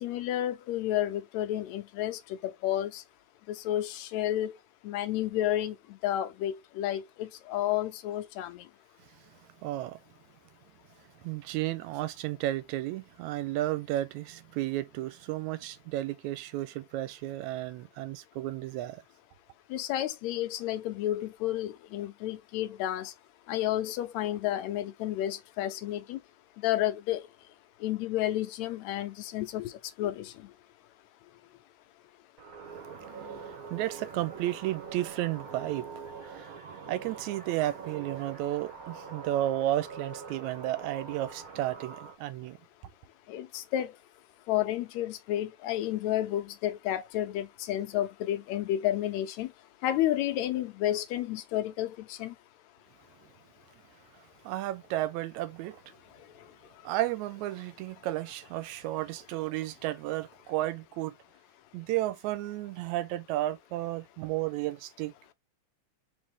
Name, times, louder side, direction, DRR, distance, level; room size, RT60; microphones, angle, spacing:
voice 1, 0.0-3.0 3.5-4.6 4.8-5.8 6.0-8.6 19.7-23.1 23.5-26.2 26.6-27.3 27.8-29.7 30.0-30.3 43.3-43.9 44.5-49.5 49.8-52.3, left 13 dB, 80° left, 1.7 m, -31 dB
voice 2, 9.6-10.0 11.2-19.0 33.1-35.9 36.2-42.6 54.4-55.8 56.8-61.2 61.7-65.1, right 15 dB, 80° right, 1.8 m, -33 dB
sound 1, 32.4-42.1, right 5 dB, 50° right, 1.1 m, -44 dB
4.3 x 3.3 x 3.5 m
omnidirectional pair, 3.5 m